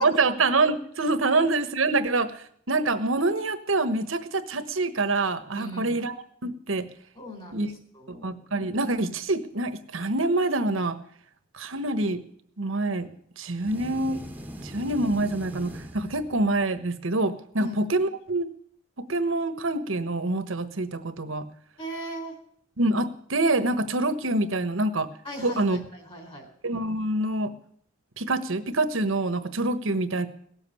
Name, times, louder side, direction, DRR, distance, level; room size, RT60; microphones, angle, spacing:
voice 1, 0.0-6.1 6.4-6.9 7.5-7.7 8.1-11.0 11.5-12.2 12.6-14.2 14.6-18.5 19.1-21.4 22.8-25.1 25.4-25.8 26.6-27.5 28.2-30.3, right 2 dB, 80° right, 10 dB, 1.2 m, -26 dB
voice 2, 5.5-6.0 7.2-8.3 17.6-17.8 21.8-22.4 25.2-26.5, equal, 25° left, 5 dB, 3.8 m, -37 dB
sound 1, 13.6-16.7, equal, 10° right, 1.1 m, -41 dB
17.5 x 7.5 x 9.7 m, 0.64 s
head